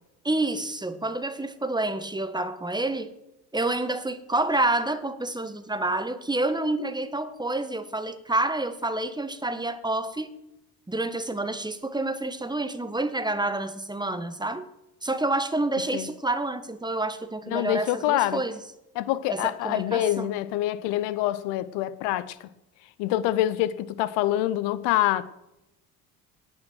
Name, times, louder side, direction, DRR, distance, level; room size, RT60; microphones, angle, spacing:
voice 1, 0.2-3.1 3.5-10.3 10.9-14.6 15.0-18.6 19.3-20.3, right 2 dB, 10° right, 1.4 m, -28 dB
voice 2, 17.5-18.4 19.0-22.5 23.0-25.2, left 14 dB, 65° left, 0.8 m, -26 dB
18.0 x 9.0 x 6.1 m
hypercardioid pair, 60°, 45 cm